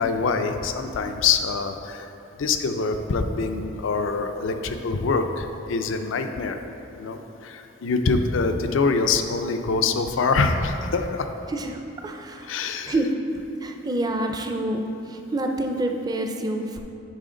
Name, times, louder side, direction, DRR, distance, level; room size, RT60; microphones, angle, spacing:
voice 1, 0.0-2.1 2.4-6.6 7.0-11.3 12.4-13.0, left 4 dB, 85° left, 7 dB, 0.5 m, -24 dB
voice 2, 11.5-12.5 12.9-16.8, right 1 dB, 20° right, 4 dB, 0.4 m, -27 dB
9.0 x 4.9 x 3.8 m, 2.9 s
head